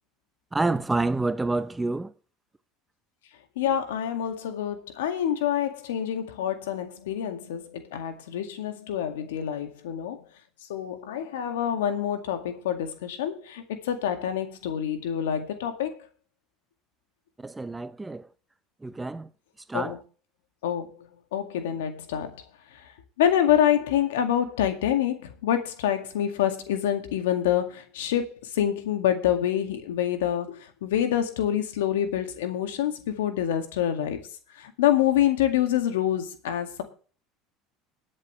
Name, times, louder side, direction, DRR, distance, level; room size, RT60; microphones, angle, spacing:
voice 1, 0.5-2.1 17.4-18.3 18.8-19.3 19.7-20.0, right 2 dB, 15° right, 0.7 m, -28 dB
voice 2, 3.6-10.2 10.7-16.0 19.7-20.0 20.6-22.4 22.7-22.9 23.2-34.2 34.6-36.8, left 10 dB, 85° left, 2.0 m, -27 dB
20.5 x 7.6 x 3.2 m
hypercardioid pair, 85°, 0 cm